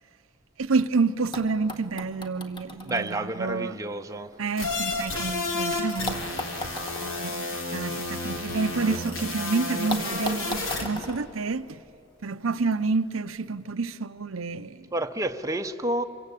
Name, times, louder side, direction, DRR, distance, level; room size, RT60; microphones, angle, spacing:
voice 1, 0.6-3.7 4.4-6.5 7.0-11.8 12.2-14.8, right 4 dB, 80° right, 0.7 m, -29 dB
sound 1, 0.9-1.0 1.3-5.4 6.1-9.0 9.3-9.4 9.9-12.3 13.3-13.4, left 1 dB, 25° left, 1.8 m, -39 dB
voice 2, 2.8-4.3 14.9-16.0, right 1 dB, 15° right, 0.8 m, -29 dB
sound 2, 4.6-10.8, left 2 dB, 75° left, 3.5 m, -31 dB
27.5 x 24.5 x 8.3 m
head